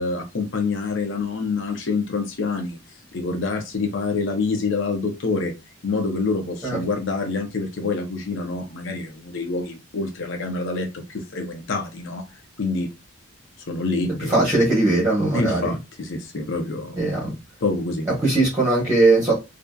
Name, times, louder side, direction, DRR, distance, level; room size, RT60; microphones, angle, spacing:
voice 1, 0.0-2.8 3.1-5.5 5.8-12.9 13.7-14.4 15.3-17.0 17.6-18.1, left 3 dB, 65° left, 0.6 m, -26 dB
voice 2, 14.3-15.6 17.0-17.3 18.2-19.3, right 2 dB, 10° right, 0.9 m, -19 dB
2.6 x 2.4 x 2.2 m
head